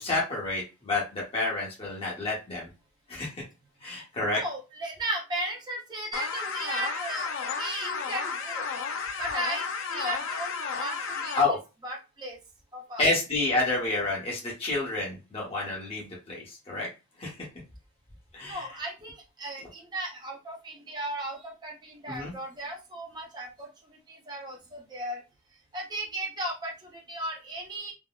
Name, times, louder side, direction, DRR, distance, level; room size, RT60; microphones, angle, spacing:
voice 1, 0.0-2.7 3.1-3.4 3.8-4.4 11.4-11.6 13.0-16.9 17.2-17.4 18.3-18.7 22.1-22.3, left 2 dB, 25° left, -4 dB, 0.9 m, -29 dB
voice 2, 4.3-8.7 9.2-9.6 9.9-11.4 11.8-12.4 12.7-13.1 18.4-25.2 25.7-27.9, right 1 dB, 20° right, -2 dB, 0.6 m, -36 dB
sound 1, 6.1-11.4, left 5 dB, 65° left, 0.4 m, -33 dB
3.6 x 2.0 x 2.3 m, 0.28 s
head